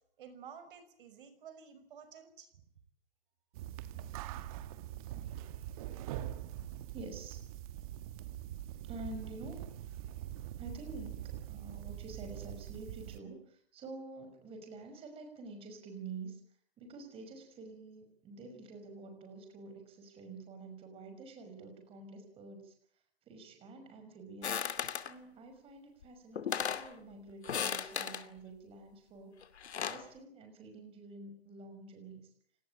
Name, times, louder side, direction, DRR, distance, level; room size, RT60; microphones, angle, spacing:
voice 1, 0.2-2.5, right 7 dB, 50° right, 10 dB, 5.7 m, -52 dB
sound 1, 3.5-13.2, right 12 dB, 35° right, 1.6 m, -43 dB
voice 2, 6.9-7.4 8.8-9.6 10.6-16.4 16.8-22.7 23.3-24.7 25.1-29.3 29.8-32.2, right 3 dB, 15° right, 6 dB, 5.9 m, -48 dB
sound 2, 24.4-25.1 26.0-26.1 26.4-26.9 27.4-28.2 29.4-30.1, left 8 dB, 75° left, 2.6 m, -36 dB
29.5 x 19.0 x 9.0 m, 0.67 s
hypercardioid pair, 155°, 33 cm